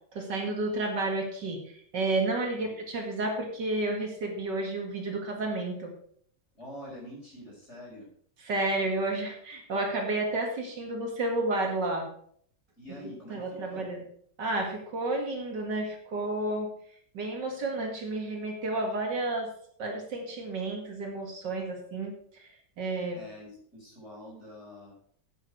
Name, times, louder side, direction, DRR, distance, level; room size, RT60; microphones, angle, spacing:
voice 1, 0.1-5.9 8.4-12.1 13.3-14.0 14.4-16.7 17.1-19.5 19.8-22.5 22.8-23.2, right 2 dB, 75° right, 1 dB, 2.7 m, -31 dB
voice 2, 6.5-8.1 12.8-13.9 23.1-24.9, left 1 dB, 35° left, -4 dB, 5.5 m, -46 dB
9.9 x 9.1 x 4.6 m, 0.62 s
omnidirectional pair, 1.9 m